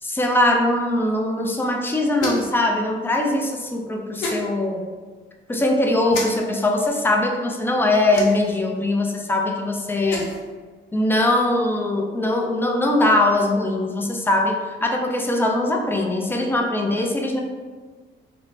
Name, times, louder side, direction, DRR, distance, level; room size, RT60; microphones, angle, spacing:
voice 1, 0.0-4.9 5.5-10.3 10.9-17.4, left 1 dB, 10° left, 2 dB, 0.3 m, -21 dB
sound 1, 2.2-2.6 4.2-4.4 6.1-6.3 8.1-8.6 9.9-10.4, left 2 dB, 90° left, 0.6 m, -29 dB
3.1 x 2.1 x 2.5 m, 1.4 s
cardioid pair, 90°, 20 cm